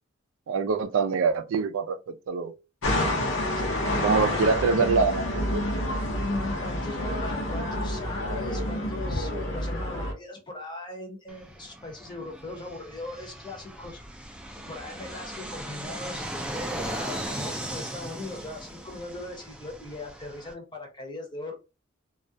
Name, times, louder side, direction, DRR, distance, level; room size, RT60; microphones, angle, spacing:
voice 1, 0.5-2.5 4.0-5.6, right 4 dB, 80° right, 0.3 m, -25 dB
sound 1, 2.8-10.1, left 1 dB, 70° left, 0.6 m, -28 dB
voice 2, 3.5-4.4 6.5-14.0 14.7-21.5, left 2 dB, 25° left, 0.7 m, -39 dB
Fixed-wing aircraft airplane, 11.3-20.5, right 1 dB, 5° right, 0.3 m, -38 dB
2.3 x 2.1 x 2.6 m
head